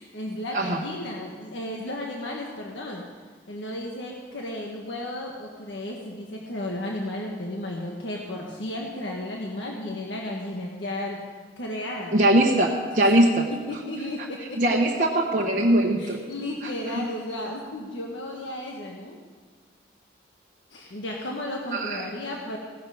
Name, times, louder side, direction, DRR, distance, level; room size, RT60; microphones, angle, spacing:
voice 1, 0.0-3.0 3.5-11.2 11.6-12.2 13.5-14.6 16.0-19.2 20.7-22.6, left 1 dB, 90° left, -1 dB, 1.5 m, -34 dB
voice 2, 12.1-13.4 14.6-16.2 21.7-22.0, right 1 dB, 45° right, -3 dB, 1.1 m, -21 dB
16.5 x 11.0 x 5.1 m, 1.5 s
head